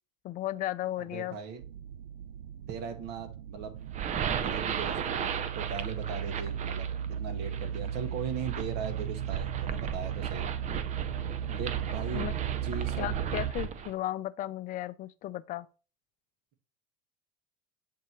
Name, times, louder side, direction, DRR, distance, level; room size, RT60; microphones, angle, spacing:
voice 1, 0.2-1.4 12.1-12.3 13.0-15.7, left 14 dB, 40° left, 0.5 m, -35 dB
voice 2, 1.0-1.6 2.7-3.8 4.2-10.5 11.5-12.3 12.6-13.1, right 6 dB, 55° right, 1.3 m, -39 dB
sound 1, 1.6-13.5, right 9 dB, 85° right, 0.4 m, -36 dB
sound 2, 3.8-13.9, right 8 dB, 35° right, 0.6 m, -36 dB
7.4 x 2.8 x 4.6 m
supercardioid pair, 100°, 21 cm